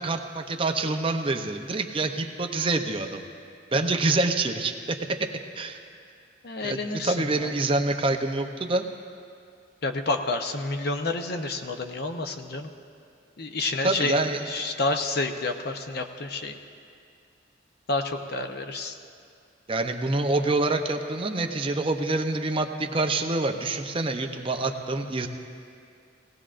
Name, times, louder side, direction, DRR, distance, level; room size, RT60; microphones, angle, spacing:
voice 1, 0.0-3.3 3.7-5.0 5.6-5.8 6.6-8.9 13.8-14.4 19.7-25.3, right 2 dB, 30° right, 5 dB, 0.6 m, -26 dB
voice 2, 6.4-7.5 9.8-12.7 13.4-16.5 17.9-18.9, left 2 dB, 55° left, 6 dB, 0.8 m, -29 dB
18.5 x 17.0 x 2.5 m, 2.4 s
head